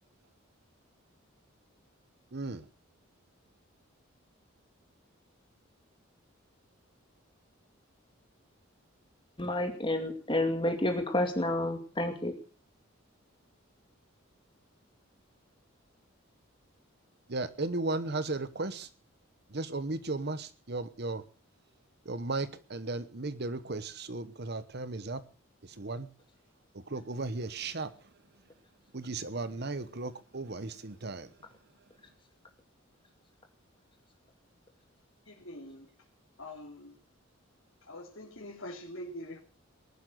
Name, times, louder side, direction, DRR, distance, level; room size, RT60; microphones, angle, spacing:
voice 1, 2.3-2.6 17.3-18.9 19.5-21.2 22.0-25.2 25.6-26.1 26.7-27.9 28.9-31.3, right 3 dB, 50° right, 14 dB, 1.0 m, -35 dB
voice 2, 9.4-12.3, left 1 dB, 25° left, 5 dB, 2.3 m, -30 dB
voice 3, 35.3-35.9 36.4-37.0 37.9-39.4, left 1 dB, 70° left, -2 dB, 3.2 m, -44 dB
19.5 x 11.5 x 6.3 m, 0.38 s
head